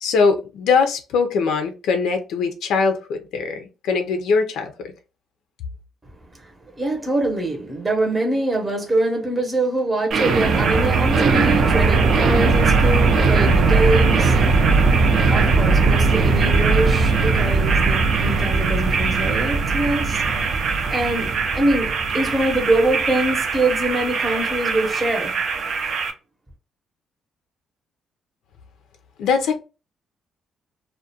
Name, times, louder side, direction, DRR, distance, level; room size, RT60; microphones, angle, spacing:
voice 1, 0.0-4.9 29.2-29.5, left 5 dB, 80° left, 0.4 m, -21 dB
voice 2, 6.3-14.3 15.3-20.2 20.7-25.4, right 2 dB, 15° right, 0.7 m, -24 dB
sound 1, 10.1-26.1, right 4 dB, 65° right, 0.5 m, -19 dB
2.4 x 2.1 x 2.7 m
cardioid pair, 90°, 0 cm